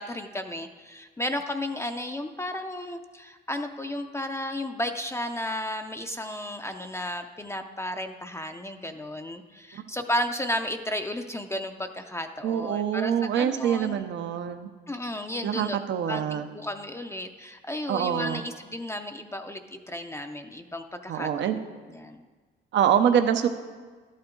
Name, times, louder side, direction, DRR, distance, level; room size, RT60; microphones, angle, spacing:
voice 1, 0.0-14.0 14.9-15.8 16.1-21.6 21.9-22.2, left 1 dB, 15° left, 6 dB, 0.5 m, -33 dB
voice 2, 12.4-14.7 15.4-16.5 17.9-18.4 21.1-21.6 22.7-23.5, right 9 dB, 65° right, 8 dB, 0.7 m, -25 dB
12.0 x 8.8 x 3.8 m, 1.4 s
cardioid pair, 90°, 20 cm